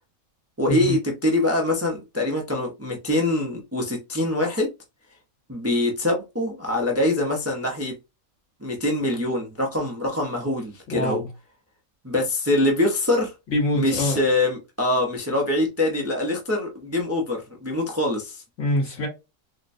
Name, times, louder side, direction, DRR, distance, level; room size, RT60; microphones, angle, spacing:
voice 1, 0.6-4.7 5.5-8.0 8.6-11.2 12.0-13.3 13.7-18.4, left 1 dB, 15° right, 0.5 m, -24 dB
voice 2, 10.9-11.3 13.5-14.2 18.6-19.1, left 1 dB, 70° left, 1.7 m, -24 dB
3.9 x 2.1 x 2.5 m
omnidirectional pair, 1.4 m